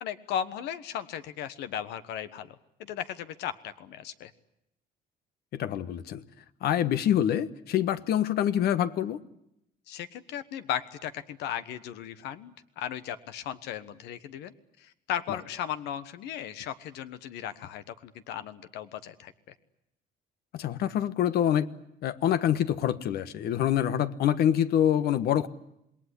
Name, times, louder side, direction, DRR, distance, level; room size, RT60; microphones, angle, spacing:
voice 1, 0.0-4.3 9.9-19.5, left 10 dB, 85° left, 12 dB, 1.3 m, -36 dB
voice 2, 5.5-6.2 6.6-9.2 20.5-21.7 22.0-25.5, left 10 dB, 70° left, 13 dB, 1.3 m, -26 dB
27.0 x 19.5 x 10.0 m, 0.80 s
cardioid pair, 110°, 17 cm